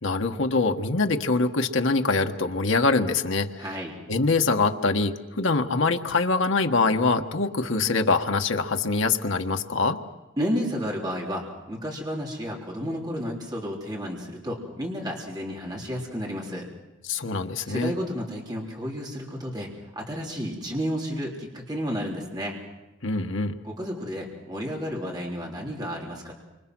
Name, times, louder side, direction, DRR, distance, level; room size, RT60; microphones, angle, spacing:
voice 1, 0.0-3.6 4.1-10.0 17.1-17.9 23.0-23.6, left 3 dB, 80° left, 5 dB, 1.5 m, -24 dB
voice 2, 3.6-4.0 10.4-16.7 17.6-19.7 20.0-22.6 23.6-26.3, equal, 20° right, -2 dB, 3.7 m, -32 dB
29.0 x 25.5 x 6.2 m, 1.1 s
head